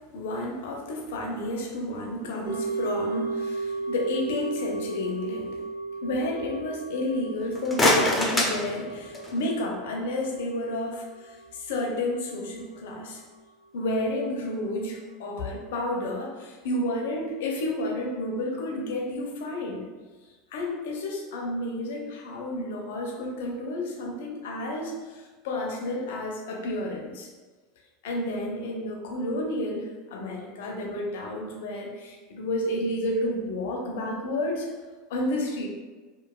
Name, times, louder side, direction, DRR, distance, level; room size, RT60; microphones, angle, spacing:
voice 1, 0.1-5.6 6.0-13.2 13.7-19.9 20.5-27.3 28.0-34.7 35.1-35.7, left 1 dB, 70° left, 0 dB, 0.5 m, -31 dB
sound 1, 2.5-12.7 13.0-13.1, right 3 dB, 40° right, 1.3 m, -35 dB
sound 2, 7.4-9.5, left 1 dB, 15° left, 0.6 m, -25 dB
2.9 x 2.2 x 2.3 m, 1.3 s
hypercardioid pair, 85°, 0 cm